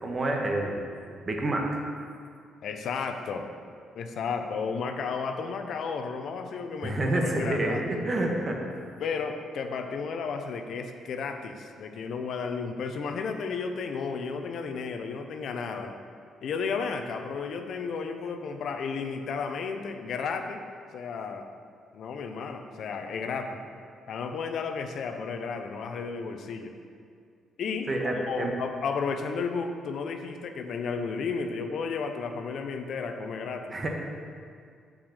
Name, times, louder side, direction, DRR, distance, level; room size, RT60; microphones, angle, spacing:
voice 1, 0.0-0.8 1.3-1.8 6.8-8.6 27.9-28.5 33.7-33.9, right 1 dB, 40° right, 1 dB, 1.5 m, -28 dB
voice 2, 2.6-3.5 3.9-7.8 9.0-16.0 16.4-20.6 20.9-21.5 21.9-23.6 24.1-26.7 27.6-33.7, left 5 dB, 70° left, 6 dB, 0.7 m, -33 dB
6.7 x 6.1 x 6.5 m, 2.2 s
cardioid pair, 70°, 0 cm